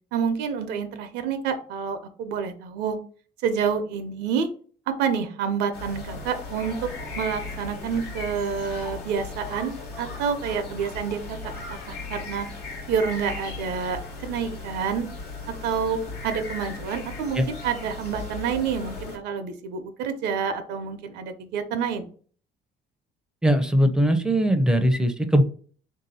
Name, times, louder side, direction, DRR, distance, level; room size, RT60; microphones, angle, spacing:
voice 1, 0.1-3.0 3.4-4.5 5.0-6.9 7.2-11.4 11.7-12.5 12.9-15.1 15.6-22.1, right 6 dB, 85° right, 8 dB, 0.6 m, -28 dB
sound 1, 5.7-19.2, left 3 dB, 80° left, 1.3 m, -37 dB
voice 2, 23.4-25.4, equal, 5° right, 8 dB, 0.5 m, -20 dB
3.6 x 2.7 x 4.0 m, 0.44 s
cardioid pair, 110°, 17 cm